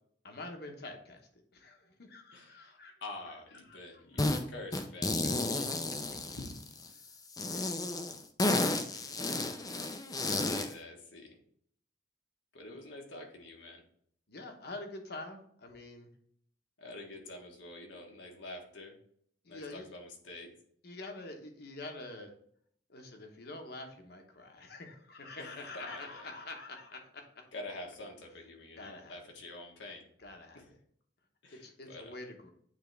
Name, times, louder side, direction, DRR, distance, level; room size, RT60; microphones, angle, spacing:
voice 1, 0.2-3.0 3.7-4.3 6.9-7.0 7.5-7.8 14.3-16.1 19.4-19.9 20.8-22.3 22.9-27.5 28.8-29.3 30.2-30.8 31.5-32.5, left 2 dB, 60° left, 4 dB, 1.1 m, -46 dB
voice 2, 2.3-5.3 5.5-6.5 7.6-7.8 8.9-9.6 10.2-11.4 12.5-13.8 16.8-19.0 19.5-20.5 25.4-26.3 27.5-30.0 30.5-30.7 31.4-32.2, left 2 dB, 85° left, 0 dB, 1.5 m, -47 dB
sound 1, 4.2-4.4 4.7-6.8 7.3-10.7, left 2 dB, 20° left, 0.5 m, -32 dB
8.8 x 3.5 x 3.4 m, 0.64 s
head